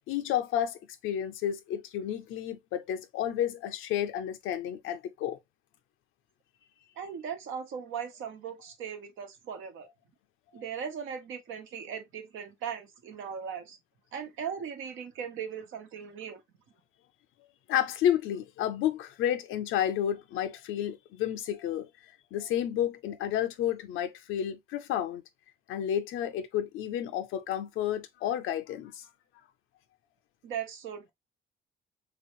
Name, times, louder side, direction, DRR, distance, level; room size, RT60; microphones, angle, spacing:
voice 1, 0.1-5.4 17.7-21.9 22.3-25.2 25.7-29.0, left 10 dB, 90° left, 0.6 m, -31 dB
voice 2, 7.0-9.9 10.5-13.8 14.1-16.4 30.4-31.1, right 7 dB, 85° right, 1.1 m, -38 dB
3.4 x 3.0 x 2.9 m
cardioid pair, 90°, 20 cm